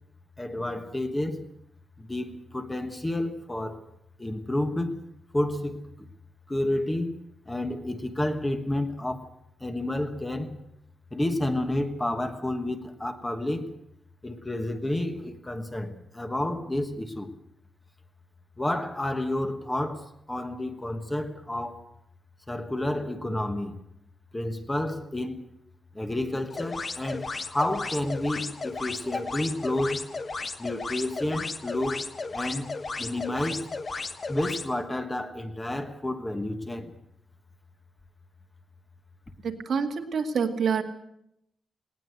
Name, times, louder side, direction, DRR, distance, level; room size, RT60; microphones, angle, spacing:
voice 1, 0.4-1.4 2.0-3.8 4.2-5.0 5.3-6.1 6.5-7.2 7.5-9.3 9.6-10.6 11.1-13.7 14.2-17.3 18.6-21.9 22.5-23.8 24.3-25.4 25.9-30.0 30.6-32.1 32.3-32.7 33.0-33.7 34.3-36.9, left 1 dB, 10° left, 7 dB, 1.3 m, -30 dB
sound 1, 26.5-34.7, left 3 dB, 30° left, 1.2 m, -35 dB
voice 2, 39.4-40.8, right 6 dB, 50° right, 4 dB, 2.1 m, -27 dB
19.0 x 18.5 x 7.9 m, 0.78 s
wide cardioid pair, 165°, 0 cm